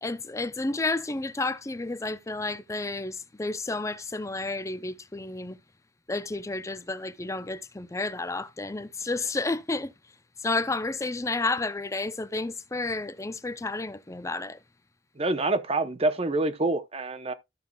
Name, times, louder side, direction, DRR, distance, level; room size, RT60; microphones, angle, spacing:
voice 1, 0.0-5.6 6.1-9.9 10.4-14.6, left 3 dB, 15° left, 0.5 m, -31 dB
voice 2, 15.2-17.3, right 2 dB, 35° right, 0.8 m, -26 dB
13.0 x 6.6 x 2.3 m
head